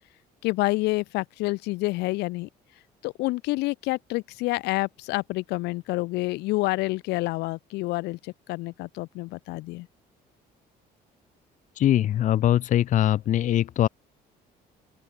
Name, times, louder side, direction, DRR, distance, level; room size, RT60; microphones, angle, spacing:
voice 1, 0.4-2.5 3.0-9.9, left 21 dB, 90° left, 0.7 m, -28 dB
voice 2, 11.8-13.9, left 12 dB, 50° left, 0.5 m, -22 dB
open air
cardioid pair, 110°, 17 cm